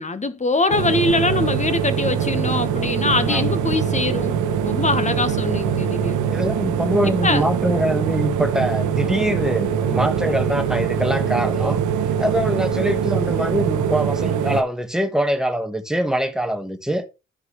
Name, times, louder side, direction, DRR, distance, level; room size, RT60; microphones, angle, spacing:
voice 1, 0.0-4.3 4.6-6.2 7.2-7.4, left 3 dB, 25° left, 1.1 m, -23 dB
sound 1, 0.7-14.6, right 8 dB, 75° right, 1.0 m, -23 dB
voice 2, 6.3-11.8 12.2-17.1, equal, ahead, 1.4 m, -23 dB
13.0 x 4.6 x 3.1 m
cardioid pair, 90°, 30 cm